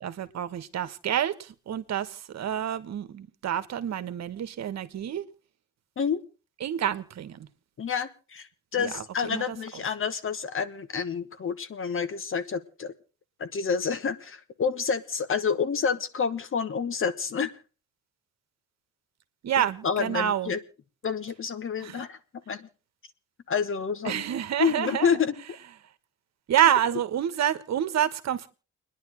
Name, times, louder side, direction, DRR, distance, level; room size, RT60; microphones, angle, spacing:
voice 1, 0.0-5.2 6.6-7.5 8.8-9.6 19.4-20.5 21.8-22.0 24.0-25.1 26.5-28.5, right 10 dB, 60° right, 1.4 m, -28 dB
voice 2, 7.8-12.9 13.4-17.5 19.6-20.6 21.0-22.2 22.5-22.7 23.5-24.2 24.6-25.6, left 6 dB, 45° left, 1.3 m, -29 dB
29.5 x 10.5 x 3.1 m
cardioid pair, 90°, 30 cm